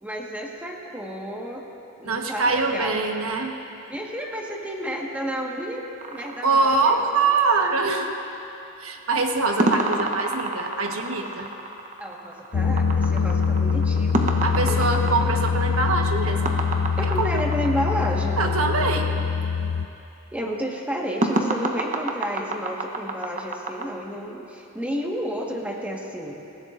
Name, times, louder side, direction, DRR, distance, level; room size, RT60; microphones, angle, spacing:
voice 1, 0.0-1.7 2.0-3.1 3.9-7.1 12.0-15.2 17.0-18.4 20.3-26.4, equal, 5° right, -2 dB, 1.6 m, -31 dB
voice 2, 2.0-3.5 6.4-8.1 8.8-11.5 14.4-16.6 17.0-17.3 18.4-19.1, right 3 dB, 70° right, 2 dB, 1.3 m, -23 dB
sound 1, 6.0-7.4 9.6-18.2 21.2-23.9, right 2 dB, 35° right, 1.0 m, -28 dB
sound 2, 12.5-19.9, left 5 dB, 75° left, 0.5 m, -24 dB
26.0 x 15.0 x 2.6 m, 2.9 s
head